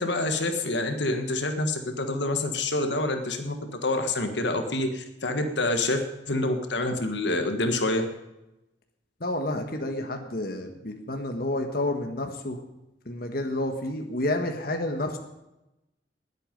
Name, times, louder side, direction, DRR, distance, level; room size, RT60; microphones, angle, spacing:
voice 1, 0.0-3.6 3.8-8.1, left 2 dB, 75° left, 6 dB, 1.6 m, -27 dB
voice 2, 9.2-12.6 13.1-15.2, left 1 dB, 55° left, 4 dB, 1.5 m, -30 dB
20.0 x 8.4 x 5.3 m, 0.94 s
head